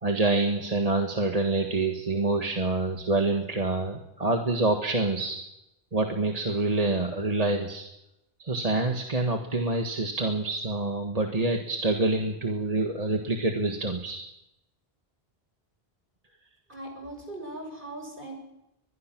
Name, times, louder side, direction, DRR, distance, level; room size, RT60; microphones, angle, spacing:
voice 1, 0.0-5.4 5.9-7.8 8.4-14.2, right 2 dB, 35° right, 3 dB, 1.6 m, -26 dB
voice 2, 16.7-18.4, right 1 dB, 55° right, 3 dB, 6.4 m, -39 dB
22.5 x 21.5 x 6.1 m, 0.89 s
omnidirectional pair, 1.0 m